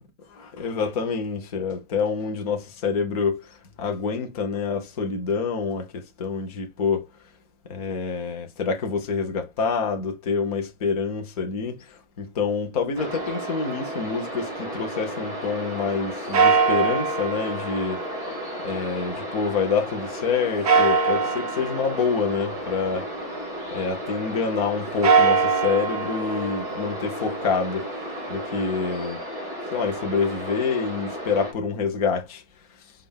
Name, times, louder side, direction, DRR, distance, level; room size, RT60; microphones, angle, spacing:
voice 1, 0.3-7.1 7.7-18.0 18.6-23.1 23.7-27.9 28.3-29.2 29.7-32.4 32.8-32.9, left 5 dB, 25° left, 0.8 m, -27 dB
sound 1, 12.9-31.5, equal, 10° right, 1.4 m, -34 dB
sound 2, 13.1-15.2 16.3-19.7 20.6-23.6 24.9-28.9, right 5 dB, 30° right, 0.6 m, -25 dB
4.9 x 2.5 x 3.3 m
hypercardioid pair, 160°, 42 cm